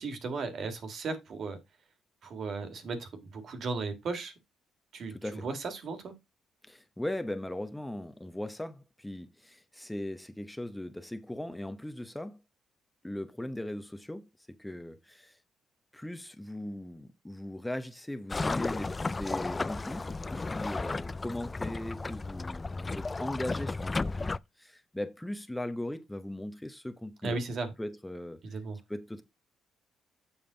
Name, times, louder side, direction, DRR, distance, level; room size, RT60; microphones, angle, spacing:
voice 1, 0.0-1.6 2.2-4.3 4.9-6.1 27.2-27.7 28.4-28.8, right 3 dB, 60° right, 1.9 m, -36 dB
voice 2, 5.1-5.5 6.6-12.4 13.0-15.4 15.9-27.4 27.8-28.6 28.9-29.2, left 1 dB, 5° left, 0.9 m, -39 dB
sound 1, 18.3-24.4, left 3 dB, 25° left, 0.3 m, -34 dB
7.3 x 5.4 x 3.9 m
cardioid pair, 90°, 0 cm